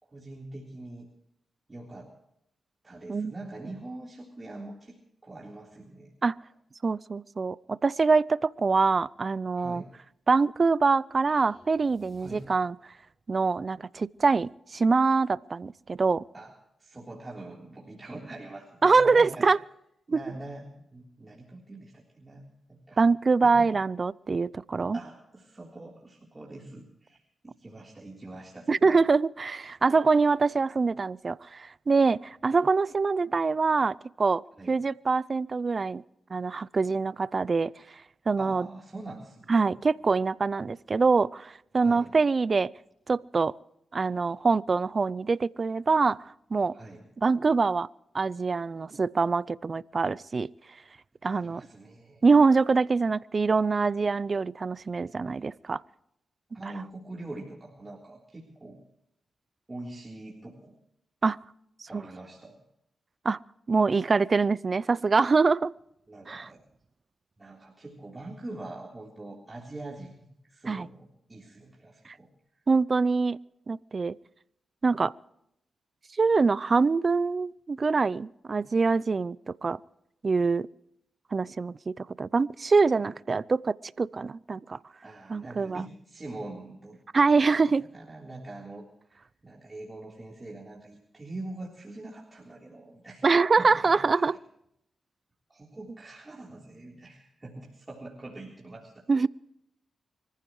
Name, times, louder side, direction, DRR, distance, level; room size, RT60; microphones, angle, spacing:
voice 1, 0.0-1.1 1.7-2.2 2.8-6.1 9.5-9.9 12.2-12.5 16.3-16.5 16.8-19.5 20.1-23.0 23.4-23.7 24.9-29.0 34.6-34.8 38.4-39.7 41.8-42.1 46.7-47.1 51.2-52.3 56.5-58.8 59.7-60.8 61.9-62.6 66.1-66.6 67.4-72.3 85.0-87.0 87.3-87.4 87.8-94.3 95.5-99.1, right 2 dB, 30° right, -3 dB, 3.7 m, -44 dB
voice 2, 6.8-9.8 10.3-12.7 13.3-16.2 18.8-19.6 20.1-20.2 23.0-25.0 28.7-36.0 36.3-37.7 38.3-38.7 39.5-42.7 43.1-43.5 43.9-46.8 47.2-47.9 48.1-50.5 51.2-51.6 52.2-55.8 61.2-61.4 61.9-62.0 63.2-63.4 63.7-65.7 66.3-66.5 70.7-70.9 72.7-73.4 73.7-74.1 74.8-75.1 76.2-79.8 80.2-80.7 81.3-84.8 85.3-85.8 87.1-87.8 93.2-94.3 99.1-99.3, right 4 dB, 50° right, 21 dB, 0.5 m, -24 dB
sound 1, 11.3-13.1, left 2 dB, 50° left, 4.4 m, -58 dB
25.0 x 15.0 x 3.1 m, 0.78 s
supercardioid pair, 45°, 0 cm